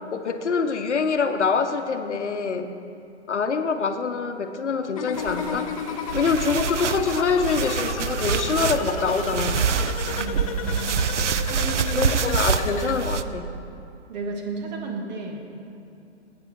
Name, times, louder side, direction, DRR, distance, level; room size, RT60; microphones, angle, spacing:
voice 1, 0.1-2.7 3.3-5.7 6.1-9.6 11.9-13.5, left 5 dB, 80° left, 8 dB, 0.9 m, -25 dB
sound 1, 5.0-13.0, left 7 dB, 30° left, 0.4 m, -34 dB
sound 2, 5.1-12.0, right 4 dB, 25° right, 0.7 m, -43 dB
sound 3, 6.1-13.2, right 6 dB, 85° right, 0.6 m, -26 dB
voice 2, 10.1-11.0 11.5-12.1 14.1-15.4, right 3 dB, 40° right, 1 dB, 1.6 m, -33 dB
14.5 x 8.6 x 4.3 m, 2.6 s
figure-of-eight pair, 125°, 35 cm